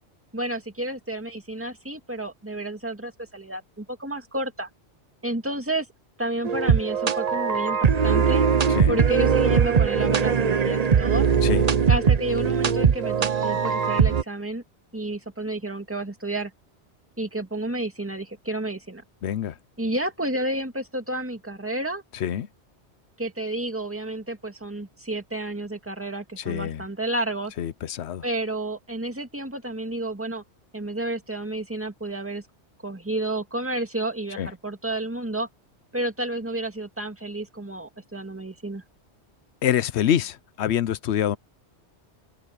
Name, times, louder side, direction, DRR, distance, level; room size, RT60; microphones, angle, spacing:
voice 1, 0.3-4.7 5.2-5.9 6.2-8.4 8.9-11.3 11.9-14.6 14.9-16.5 17.2-19.0 19.8-22.0 23.2-27.5 28.2-30.4 30.7-32.4 32.8-35.5 35.9-38.8, right 1 dB, 10° right, 2.2 m, -31 dB
sound 1, 6.4-14.2, right 6 dB, 40° right, 0.8 m, -21 dB
voice 2, 8.7-9.0 11.4-11.7 19.2-19.5 22.2-22.5 26.4-26.8 27.6-28.2 34.4-34.5 39.6-41.4, left 10 dB, 75° left, 1.0 m, -26 dB
omnidirectional pair, 1.2 m